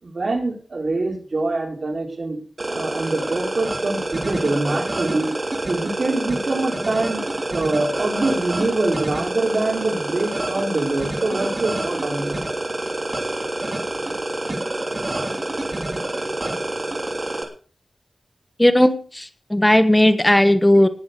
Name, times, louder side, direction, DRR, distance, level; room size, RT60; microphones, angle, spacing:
voice 1, 0.0-2.4 2.7-5.3 5.7-7.2 7.5-12.3, right 2 dB, 60° right, 2 dB, 4.6 m, -24 dB
sound 1, 2.6-17.4, right 2 dB, 35° right, 3.1 m, -27 dB
voice 2, 18.6-20.9, left 1 dB, 15° left, 10 dB, 1.2 m, -16 dB
19.0 x 7.1 x 6.7 m, 0.41 s
wide cardioid pair, 100°, 0 cm